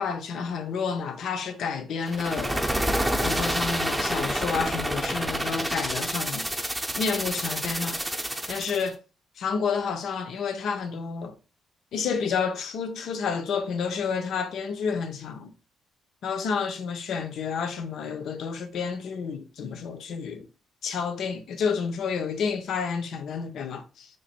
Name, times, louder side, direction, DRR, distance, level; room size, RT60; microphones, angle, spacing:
voice 1, 0.0-2.6 3.2-6.5 7.0-8.0 8.5-9.0 9.4-11.3 11.9-15.5 16.2-20.5 20.8-24.1, left 6 dB, 70° left, 0.7 m, -30 dB
sound 1, 2.1-8.9, right 1 dB, 10° right, 0.6 m, -28 dB
3.0 x 2.5 x 4.3 m
cardioid pair, 90°, 0 cm